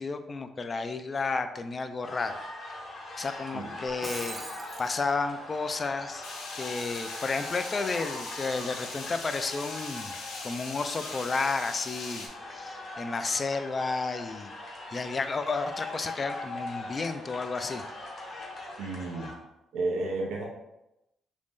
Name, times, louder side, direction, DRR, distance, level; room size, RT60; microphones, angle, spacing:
voice 1, 0.0-2.4 3.2-4.4 4.8-6.2 6.6-10.1 10.4-14.5 14.9-17.8, left 4 dB, 35° left, 9 dB, 0.3 m, -32 dB
sound 1, 2.0-19.3, left 2 dB, 65° left, 1.0 m, -41 dB
Shatter, 3.8-4.9, right 1 dB, 20° right, 0.5 m, -40 dB
sound 2, 6.2-12.3, left 3 dB, 90° left, 0.6 m, -41 dB
voice 2, 18.8-19.3 19.7-20.4, right 2 dB, 85° right, -1 dB, 0.6 m, -31 dB
2.9 x 2.6 x 3.6 m, 0.91 s
cardioid pair, 90°, 0 cm